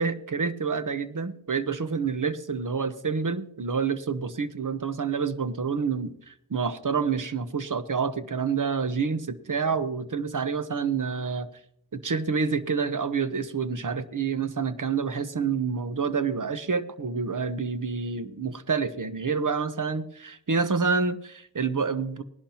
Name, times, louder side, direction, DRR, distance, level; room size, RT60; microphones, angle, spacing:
voice 1, 0.0-11.5 11.9-22.2, right 5 dB, 50° right, 11 dB, 1.1 m, -28 dB
18.5 x 11.0 x 3.0 m, 0.69 s
cardioid pair, 40°, 41 cm